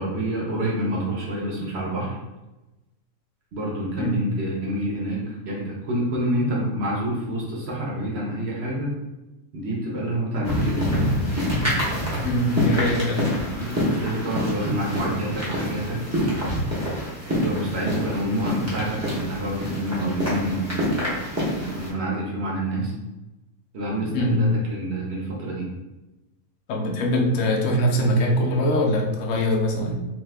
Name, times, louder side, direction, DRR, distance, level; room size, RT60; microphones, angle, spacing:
voice 1, 0.0-2.2 3.5-9.0 9.5-11.1 13.5-16.5 17.3-21.0 21.5-22.9 23.7-25.6, right 1 dB, 60° right, -4 dB, 0.8 m, -27 dB
voice 2, 4.0-4.3 12.2-13.3 24.1-24.5 26.7-29.9, equal, 70° left, 1 dB, 0.9 m, -22 dB
sound 1, 10.4-21.9, equal, 15° right, 0.6 m, -26 dB
2.7 x 2.3 x 3.3 m, 1.0 s
omnidirectional pair, 1.5 m